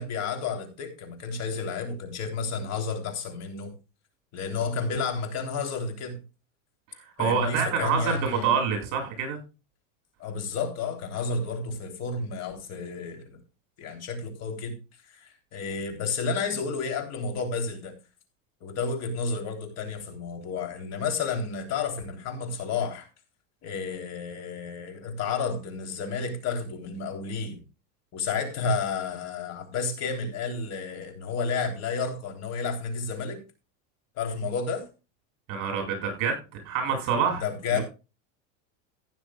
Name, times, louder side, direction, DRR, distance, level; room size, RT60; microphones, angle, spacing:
voice 1, 0.0-3.7 4.3-6.2 7.2-8.5 10.2-13.3 13.8-14.8 15.0-17.9 18.6-23.1 23.6-27.6 28.1-33.4 34.2-34.9 37.4-37.8, left 4 dB, 40° left, 3.5 m, -31 dB
voice 2, 6.9-9.4 35.5-37.4 37.7-37.8, right 6 dB, 50° right, 8.0 m, -27 dB
16.0 x 10.5 x 2.4 m
supercardioid pair, 155°, 39 cm